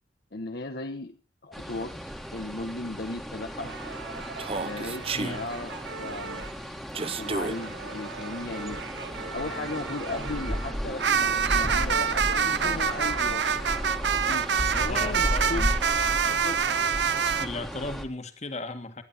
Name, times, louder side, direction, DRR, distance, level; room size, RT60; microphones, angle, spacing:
voice 1, 0.3-1.2 1.4-2.0 2.3-3.7 4.6-5.7 6.0-6.5 7.2-8.8 9.3-13.5 14.1-14.5 14.7-15.7 16.2-16.6, left 2 dB, 65° left, 5 dB, 1.1 m, -36 dB
sound 1, 1.5-18.0, equal, ahead, 1.9 m, -34 dB
sound 2, 3.6-6.5 6.9-17.5, right 7 dB, 80° right, 0.7 m, -28 dB
Human voice, 4.4-5.4 6.9-7.6, right 4 dB, 35° right, 0.8 m, -31 dB
voice 2, 5.1-5.5 14.9-15.8 17.4-19.0, left 2 dB, 40° left, 7 dB, 1.9 m, -36 dB
18.5 x 11.0 x 4.3 m, 0.33 s
head